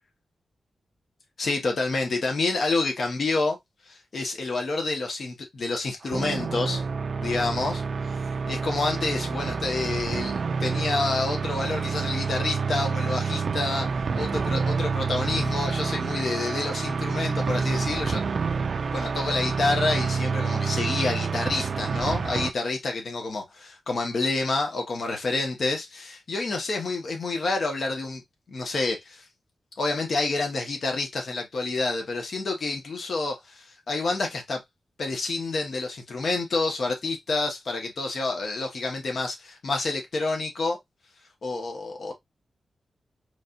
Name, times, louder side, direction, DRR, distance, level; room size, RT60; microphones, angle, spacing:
voice 1, 1.4-3.6 3.9-6.8 7.2-7.8 8.5-13.9 14.1-18.2 18.9-28.2 28.5-29.2 29.8-34.6 35.0-40.8 41.4-42.1, left 3 dB, 55° left, 1.1 m, -28 dB
sound 1, 6.0-22.5, right 5 dB, 55° right, 0.3 m, -28 dB
4.2 x 3.2 x 2.5 m
wide cardioid pair, 135°, 0 cm